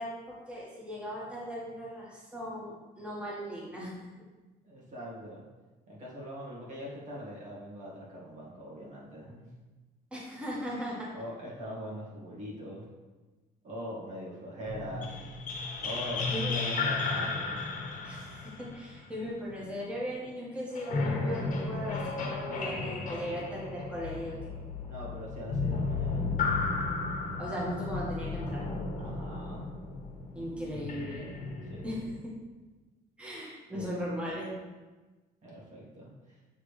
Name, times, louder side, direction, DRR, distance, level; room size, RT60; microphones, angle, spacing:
voice 1, 0.0-4.0 10.1-11.1 16.3-16.6 18.0-24.5 27.4-28.6 30.3-31.3 31.8-32.3 33.2-34.5, equal, 5° right, -6 dB, 1.6 m, -38 dB
voice 2, 4.6-5.4 5.9-9.5 11.1-12.9 13.6-15.2 15.8-17.7 24.8-26.3 29.0-29.7 31.7-31.9 33.7-33.9 35.4-36.4, equal, 45° right, -5 dB, 1.8 m, -42 dB
sound 1, 14.6-19.7 20.7-32.2, left 3 dB, 50° left, 1.3 m, -34 dB
8.7 x 3.4 x 3.3 m, 1.2 s
cardioid pair, 110°, 17 cm